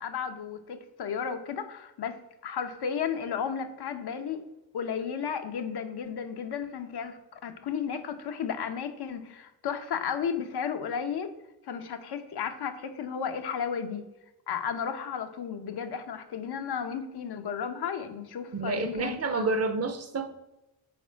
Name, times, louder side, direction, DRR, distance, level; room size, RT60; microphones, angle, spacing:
voice 1, 0.0-4.4 4.7-11.3 11.6-14.0 14.5-19.5, left 7 dB, 85° left, 7 dB, 0.9 m, -33 dB
voice 2, 18.5-20.3, right 3 dB, 40° right, 9 dB, 0.6 m, -29 dB
6.9 x 5.1 x 4.6 m, 0.96 s
wide cardioid pair, 175°, 38 cm